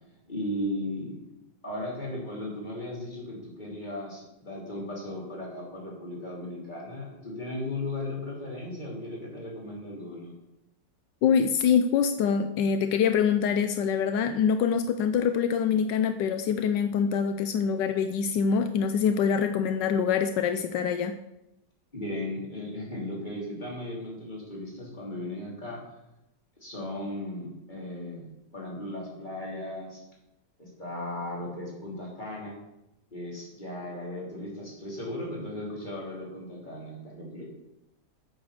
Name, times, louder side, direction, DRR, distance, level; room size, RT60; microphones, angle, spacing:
voice 1, 0.3-1.2 1.6-10.3 21.9-25.8 26.6-28.3 28.5-30.0 30.6-32.6 33.1-37.5, left 1 dB, 25° left, -4 dB, 3.4 m, -36 dB
voice 2, 11.2-21.2, left 7 dB, 80° left, 8 dB, 1.3 m, -25 dB
8.2 x 7.1 x 6.6 m, 0.89 s
omnidirectional pair, 1.9 m